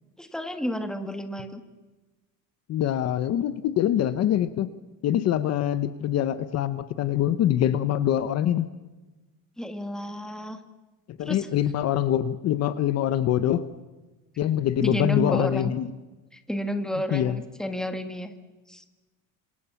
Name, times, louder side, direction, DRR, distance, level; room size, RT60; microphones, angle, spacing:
voice 1, 0.2-1.6 9.6-10.6 11.2-11.5 14.8-15.7 16.3-18.3 18.7-18.8, equal, ahead, 7 dB, 1.7 m, -31 dB
voice 2, 2.7-4.7 5.0-8.7 11.2-13.7 14.4-15.9 17.1-17.4, left 11 dB, 40° left, 13 dB, 0.9 m, -24 dB
28.0 x 27.0 x 7.1 m, 1.2 s
cardioid pair, 180°, 39 cm